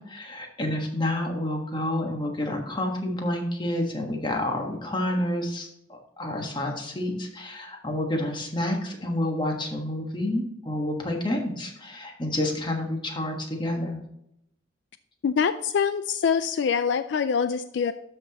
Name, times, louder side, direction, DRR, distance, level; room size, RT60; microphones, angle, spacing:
voice 1, 0.0-14.0, left 1 dB, 25° left, 2 dB, 1.4 m, -29 dB
voice 2, 15.2-17.9, left 6 dB, 70° left, 12 dB, 0.4 m, -24 dB
12.5 x 5.8 x 2.9 m, 0.79 s
head